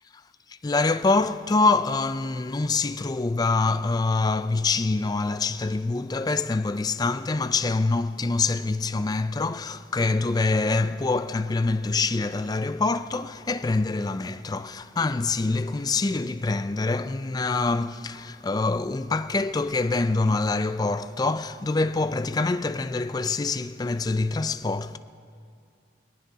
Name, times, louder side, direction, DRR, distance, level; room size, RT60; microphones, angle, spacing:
voice 1, 0.6-25.0, left 3 dB, 20° left, 0.3 m, -25 dB
22.5 x 18.5 x 2.8 m
head